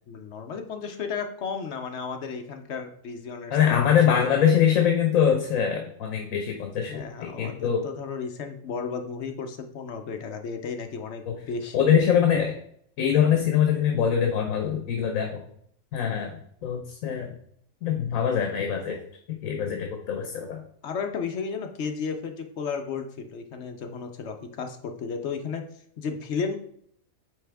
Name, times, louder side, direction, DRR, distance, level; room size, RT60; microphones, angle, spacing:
voice 1, 0.1-4.3 6.7-11.8 20.8-25.6 26.0-26.6, left 5 dB, 60° left, 5 dB, 0.9 m, -33 dB
voice 2, 3.5-6.9 7.2-7.8 11.3-11.4 11.7-12.5 13.0-15.4 15.9-16.3 16.6-17.3 17.8-19.0 19.4-19.8 20.1-20.6, left 8 dB, 80° left, 3 dB, 1.2 m, -23 dB
9.1 x 3.4 x 3.4 m, 0.66 s
omnidirectional pair, 1.4 m